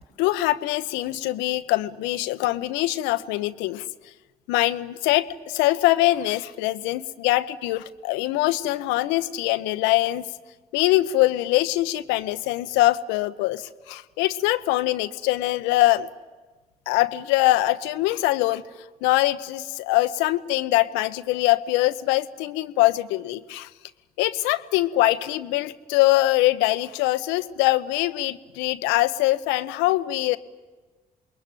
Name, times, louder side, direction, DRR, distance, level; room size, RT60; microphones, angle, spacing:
voice 1, 0.2-3.8 4.5-10.3 10.7-16.1 16.9-18.6 19.0-23.7 24.2-30.4, left 17 dB, 70° left, 12 dB, 0.9 m, -23 dB
27.5 x 21.5 x 9.1 m, 1.3 s
figure-of-eight pair, 40°, 20 cm